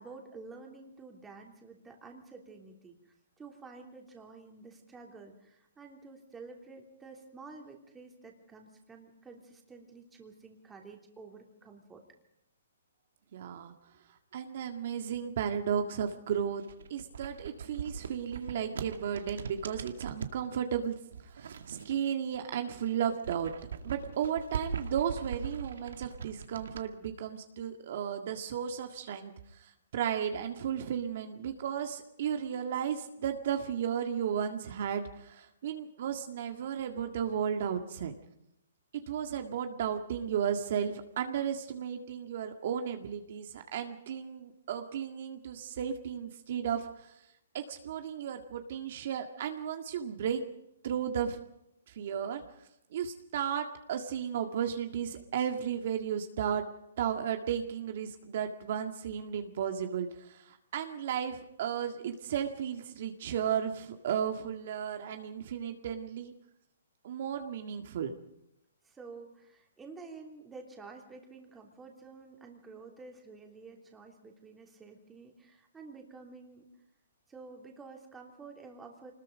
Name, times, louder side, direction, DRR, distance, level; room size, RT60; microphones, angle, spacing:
voice 1, 0.0-12.0 68.8-76.6 77.3-79.1, right 4 dB, 10° right, 2 dB, 3.0 m, -50 dB
voice 2, 13.3-13.7 14.3-16.6 16.9-21.0 21.2-23.5 23.8-38.2 39.1-47.2 47.5-50.4 50.8-51.4 51.9-52.4 52.9-56.6 57.0-66.3 67.0-68.2, right 8 dB, 50° right, 5 dB, 1.9 m, -34 dB
sound 1, 16.5-20.4 21.1-22.4 22.7-26.8, right 6 dB, 75° right, 2.0 m, -41 dB
25.5 x 20.5 x 5.2 m, 0.81 s
hypercardioid pair, 160°, 0 cm